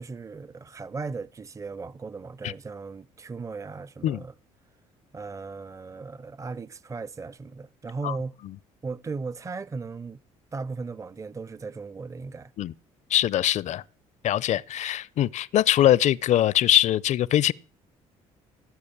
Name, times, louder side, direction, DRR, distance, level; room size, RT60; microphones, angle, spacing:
voice 1, 0.0-4.3 5.1-8.4 8.8-10.2 10.5-12.5, right 4 dB, 25° right, 0.6 m, -37 dB
voice 2, 13.1-13.8 14.2-17.5, left 12 dB, 60° left, 0.6 m, -22 dB
17.5 x 6.4 x 8.7 m
supercardioid pair, 80°, 14 cm